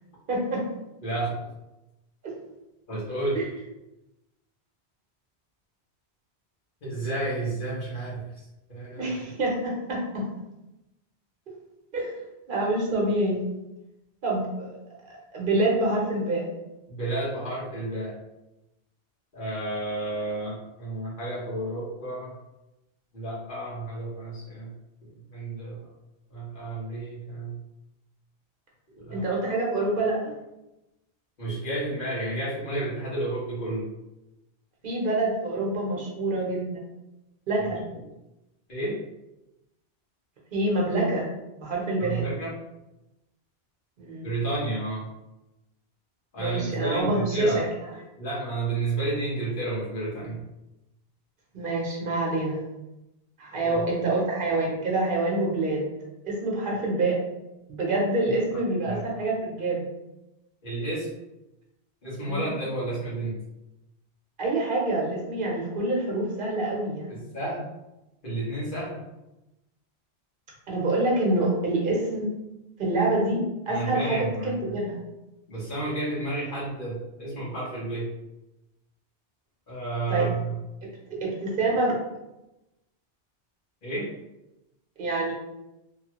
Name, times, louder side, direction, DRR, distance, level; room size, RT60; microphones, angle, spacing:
voice 1, 0.3-0.6 2.2-2.3 3.4-3.5 9.0-10.2 11.9-12.1 12.5-13.4 14.2-14.7 15.3-16.4 29.1-30.3 34.8-36.8 37.5-37.8 40.5-41.3 41.6-42.3 44.0-44.3 46.4-47.7 51.5-52.6 53.4-55.9 56.2-57.2 57.7-59.8 62.3-62.5 64.4-67.2 70.7-72.3 72.8-75.0 80.1-80.3 81.1-82.0 85.0-85.3, right 2 dB, 50° right, -3 dB, 0.9 m, -26 dB
voice 2, 1.0-1.4 2.9-3.4 6.8-9.2 16.9-18.1 19.3-22.3 23.1-24.7 25.3-25.8 26.3-27.6 28.9-29.3 31.4-33.9 37.9-38.0 38.7-39.0 42.0-42.6 44.2-45.1 46.3-47.6 48.2-50.4 53.6-53.8 58.8-59.0 60.6-61.1 62.0-63.3 67.1-67.6 68.2-69.1 73.7-74.5 75.5-78.1 79.7-80.6 83.8-84.1, right 2 dB, 50° left, -7 dB, 1.3 m, -31 dB
3.0 x 2.2 x 2.9 m, 0.95 s
omnidirectional pair, 1.1 m